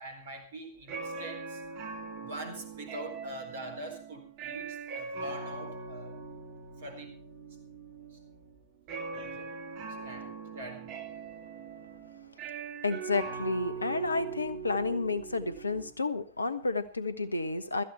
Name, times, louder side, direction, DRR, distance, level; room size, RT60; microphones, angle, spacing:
voice 1, 0.0-1.6 2.1-6.2 6.8-7.2 8.1-8.2 9.1-9.5 10.0-11.0, right 1 dB, 60° right, 7 dB, 4.2 m, -44 dB
sound 1, 0.8-15.9, right 5 dB, 45° right, 2.2 m, -41 dB
voice 2, 12.8-17.8, left 3 dB, 80° left, 13 dB, 1.2 m, -31 dB
16.5 x 14.0 x 4.5 m, 0.36 s
figure-of-eight pair, 90°, 0 cm